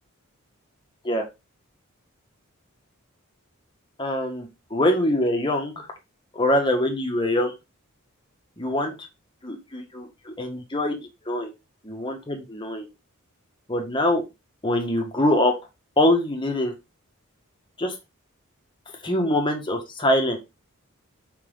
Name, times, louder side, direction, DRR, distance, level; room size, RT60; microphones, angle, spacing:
voice 1, 4.0-5.9 6.3-7.5 8.6-9.1 9.4-11.5 11.8-12.9 13.7-14.2 14.6-15.5 16.0-16.7 17.8-18.0 19.0-20.4, left 1 dB, 20° left, 2 dB, 1.8 m, -24 dB
5.9 x 5.6 x 3.9 m, 0.24 s
head